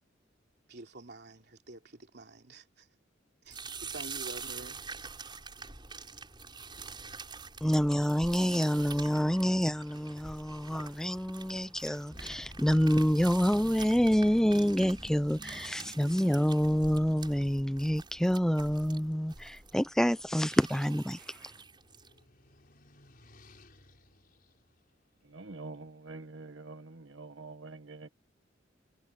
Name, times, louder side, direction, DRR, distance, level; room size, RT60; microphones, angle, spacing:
voice 1, 0.7-2.9 3.4-4.8, right 2 dB, 60° right, 3.2 m, -48 dB
sound 1, 3.5-22.2, right 5 dB, 25° right, 7.5 m, -46 dB
voice 2, 7.6-21.5, equal, 5° left, 0.5 m, -27 dB
sound 2, 12.1-18.9, left 1 dB, 20° left, 1.3 m, -49 dB
sound 3, 20.2-26.2, left 2 dB, 50° left, 5.5 m, -62 dB
voice 3, 25.2-28.1, right 3 dB, 80° right, 1.4 m, -46 dB
head